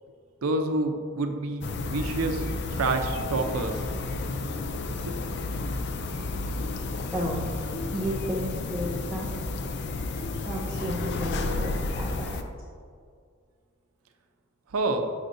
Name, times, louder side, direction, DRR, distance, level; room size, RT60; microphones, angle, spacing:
voice 1, 0.4-3.7 14.7-15.0, right 2 dB, 90° right, 6 dB, 0.6 m, -28 dB
sound 1, 1.6-12.4, left 2 dB, 55° left, 0.4 m, -32 dB
voice 2, 7.1-7.5 7.9-9.3 10.4-12.4, equal, 5° left, -6 dB, 0.7 m, -32 dB
6.6 x 6.2 x 2.6 m, 2.2 s
head